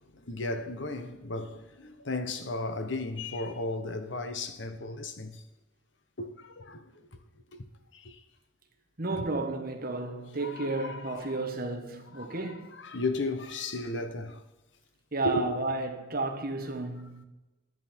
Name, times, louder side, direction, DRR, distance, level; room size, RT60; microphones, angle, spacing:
voice 1, 0.0-5.4 6.2-7.1 7.5-7.6 7.9-8.2 9.1-9.3 10.4-11.4 12.1-14.4 15.2-15.6, left 2 dB, 65° left, 1.1 m, -35 dB
voice 2, 9.0-12.8 15.1-17.2, right 2 dB, 45° right, 1.6 m, -32 dB
10.5 x 10.5 x 4.5 m
head